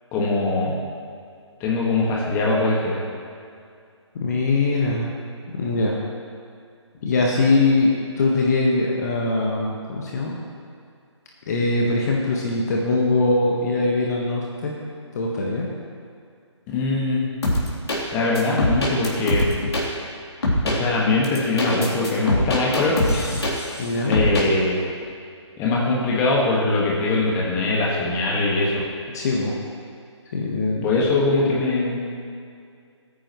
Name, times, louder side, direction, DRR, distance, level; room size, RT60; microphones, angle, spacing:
voice 1, 0.1-0.7 1.6-3.0 16.7-17.3 18.1-19.5 20.6-23.3 24.1-24.8 25.6-28.8 30.8-32.0, left 2 dB, 15° left, -4 dB, 1.8 m, -22 dB
voice 2, 4.1-5.2 5.5-6.0 7.0-7.9 8.2-10.4 11.5-14.7 15.1-15.7 23.8-24.2 29.1-29.5 30.3-31.0, left 2 dB, 35° left, -3 dB, 1.5 m, -22 dB
sound 1, 17.4-18.0 18.4-19.8 20.4-20.8 21.2-23.8 24.1-24.5, left 1 dB, 60° left, 3.4 m, -22 dB
20.0 x 9.2 x 3.2 m, 2.3 s
figure-of-eight pair, 150°, 15 cm